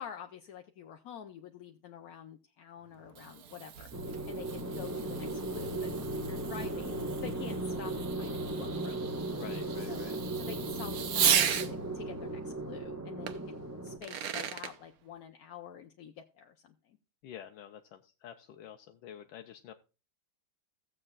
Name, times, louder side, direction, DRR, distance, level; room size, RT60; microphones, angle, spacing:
voice 1, 0.0-3.9 4.3-5.9 6.2-9.1 9.9-17.0, left 8 dB, 60° left, 4 dB, 1.0 m, -47 dB
Fireworks, 2.9-11.7 13.3-13.4 13.9-14.7, right 8 dB, 60° right, 1.1 m, -35 dB
sound 1, 3.9-14.0, right 2 dB, 10° right, 0.9 m, -37 dB
voice 2, 9.2-10.2 17.2-19.7, left 10 dB, 80° left, 5 dB, 1.4 m, -48 dB
16.5 x 7.6 x 2.4 m, 0.31 s
omnidirectional pair, 2.1 m